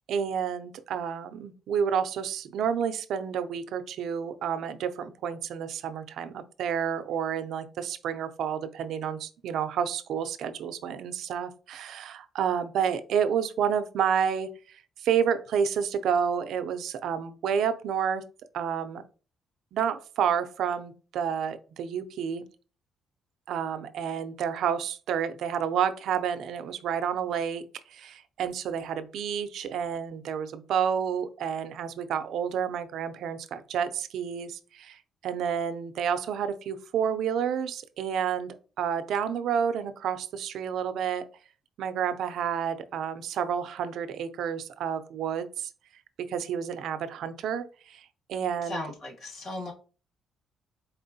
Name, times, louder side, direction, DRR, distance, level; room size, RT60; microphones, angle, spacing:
voice 1, 0.0-18.2 18.5-19.0 19.7-22.4 23.5-27.6 27.9-41.2 41.8-45.7 46.2-48.8, right 8 dB, 70° right, 10 dB, 0.4 m, -30 dB
voice 2, 48.6-49.7, left 1 dB, 50° left, 0 dB, 1.7 m, -36 dB
4.3 x 3.6 x 2.6 m, 0.37 s
cardioid pair, 135°, 0 cm